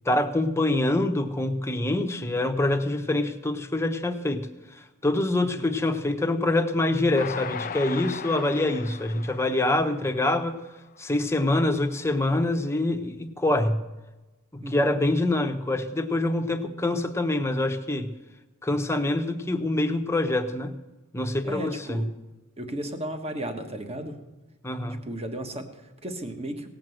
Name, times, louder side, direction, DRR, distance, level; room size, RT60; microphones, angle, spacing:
voice 1, 0.0-4.5 4.8-10.6 11.0-13.8 14.5-18.1 18.6-20.7 21.1-22.0 24.6-25.0, left 2 dB, 10° left, 5 dB, 0.9 m, -25 dB
Train, 7.2-10.6 11.1-11.2 11.5-11.6, left 7 dB, 40° left, 0.4 m, -38 dB
voice 2, 21.4-22.1 22.6-24.2 25.0-26.7, right 1 dB, 30° right, 6 dB, 1.4 m, -34 dB
17.5 x 7.7 x 7.7 m, 1.1 s
head